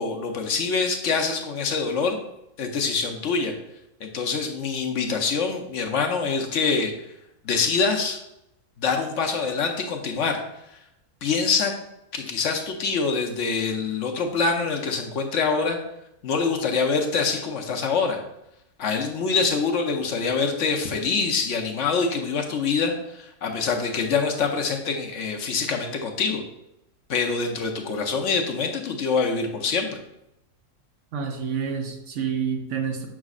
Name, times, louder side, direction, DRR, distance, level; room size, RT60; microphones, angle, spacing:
voice 1, 0.0-2.2 2.6-3.5 4.0-6.9 7.4-8.2 8.8-10.4 11.2-11.7 12.1-15.8 16.2-18.2 18.8-26.4 27.1-29.9, left 4 dB, 60° left, 3 dB, 1.0 m, -25 dB
voice 2, 31.1-33.1, right 7 dB, 60° right, 3 dB, 1.1 m, -28 dB
7.3 x 6.1 x 2.4 m, 0.84 s
omnidirectional pair, 1.6 m